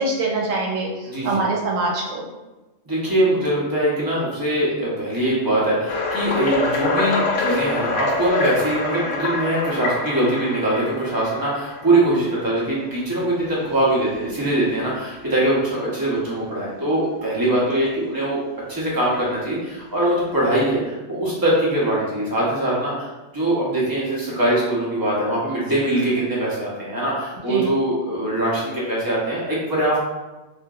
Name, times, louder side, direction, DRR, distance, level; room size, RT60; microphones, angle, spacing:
voice 1, 0.0-2.2 26.1-26.3 27.5-27.7, right 3 dB, 85° right, -1 dB, 1.0 m, -24 dB
voice 2, 1.1-1.4 2.9-18.4 18.7-23.1 23.3-30.0, right 1 dB, 20° right, -6 dB, 0.6 m, -22 dB
sound 1, 5.9-12.7 13.4-13.6 14.1-14.2 14.8-14.9 16.2-16.3 19.1-19.2 20.0-20.7, left 3 dB, 75° left, 0.9 m, -26 dB
2.8 x 2.5 x 2.3 m, 1.1 s
omnidirectional pair, 1.3 m